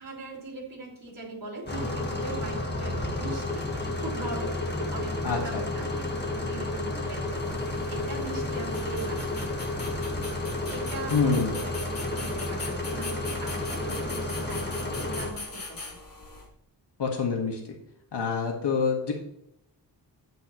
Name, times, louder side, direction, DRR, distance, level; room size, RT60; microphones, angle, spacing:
voice 1, 0.0-11.7 12.1-16.0, right 2 dB, 50° right, -3 dB, 4.5 m, -41 dB
sound 1, 1.7-15.3, left 2 dB, 25° left, 1.6 m, -31 dB
voice 2, 5.2-5.6 11.1-11.6 17.0-17.7 18.1-19.1, left 5 dB, 75° left, 1 dB, 1.9 m, -26 dB
sound 2, 7.3-16.5, left 3 dB, 55° left, 3.2 m, -41 dB
11.0 x 9.1 x 3.1 m, 0.77 s
wide cardioid pair, 125°, 42 cm